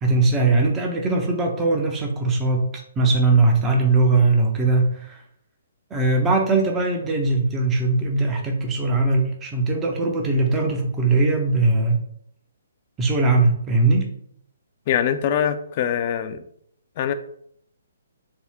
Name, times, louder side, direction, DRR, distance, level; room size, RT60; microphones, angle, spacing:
voice 1, 0.0-5.2 5.9-12.0 13.0-14.1, right 3 dB, 15° right, 1 dB, 0.6 m, -20 dB
voice 2, 14.9-16.4 17.0-17.1, left 9 dB, 40° left, 9 dB, 0.4 m, -23 dB
3.5 x 2.1 x 4.3 m, 0.66 s
hypercardioid pair, 135°, 0 cm